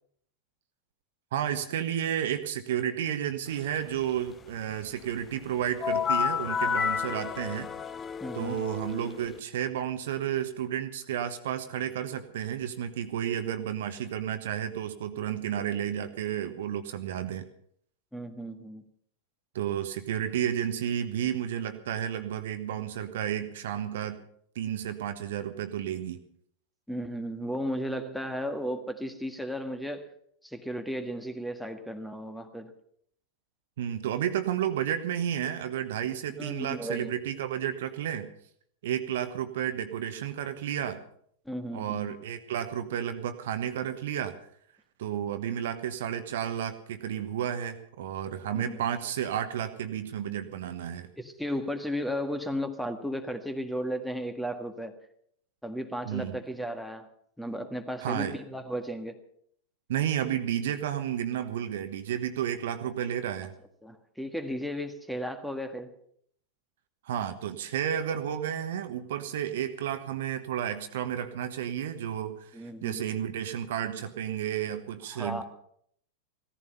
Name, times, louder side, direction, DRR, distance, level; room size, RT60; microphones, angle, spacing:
voice 1, 1.3-7.7 8.3-17.5 19.5-24.2 24.5-26.2 33.8-38.3 38.8-41.0 41.7-44.4 45.0-51.1 56.0-56.4 58.0-58.4 59.9-63.5 67.0-75.4, right 10 dB, 55° right, 9 dB, 1.3 m, -32 dB
sound 1, 5.8-9.4, left 7 dB, 20° left, 0.6 m, -30 dB
voice 2, 8.2-8.6 18.1-18.8 26.9-30.1 30.4-32.7 36.4-37.1 41.4-42.1 48.5-48.8 51.2-54.9 55.6-57.1 57.4-59.2 63.8-65.9 72.5-73.1 75.1-75.4, equal, ahead, 8 dB, 1.6 m, -34 dB
16.5 x 14.5 x 5.6 m, 0.65 s
figure-of-eight pair, 90°, 0 cm